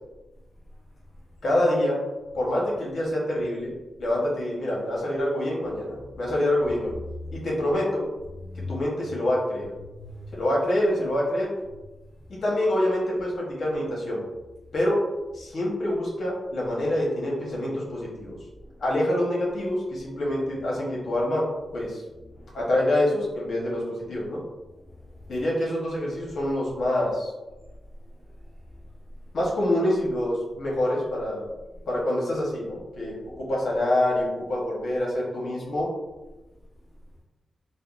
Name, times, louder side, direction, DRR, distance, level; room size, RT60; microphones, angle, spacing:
voice 1, 1.4-2.0 2.3-3.7 4.0-6.9 7.3-8.0 8.7-9.7 10.3-11.5 12.4-14.2 14.7-15.0 15.3-18.4 18.8-21.4 21.7-22.0 22.5-24.4 25.3-27.3 29.3-31.5 31.9-35.9, left 1 dB, 70° left, -4 dB, 0.9 m, -26 dB
voice 2, 5.7-6.3 7.0-7.5 8.4-9.1 9.8-10.5 11.7-11.8 18.6-18.9 21.7-22.7 24.7-25.4 28.1-28.8, left 2 dB, 5° left, -9 dB, 0.7 m, -42 dB
3.4 x 2.1 x 2.4 m, 1.1 s
cardioid pair, 95°, 0 cm